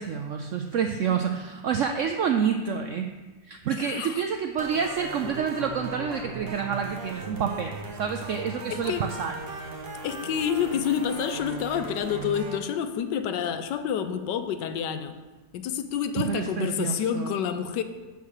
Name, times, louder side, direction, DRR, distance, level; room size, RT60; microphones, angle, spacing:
voice 1, 0.0-3.1 3.5-9.3 16.2-17.4, right 7 dB, 80° right, 5 dB, 0.7 m, -28 dB
voice 2, 3.8-4.2 8.7-9.1 10.0-15.2 15.5-17.8, left 8 dB, 85° left, 9 dB, 1.3 m, -28 dB
sound 1, 4.6-12.6, right 3 dB, 40° right, 0.9 m, -38 dB
7.3 x 5.7 x 6.5 m, 1.3 s
omnidirectional pair, 1.8 m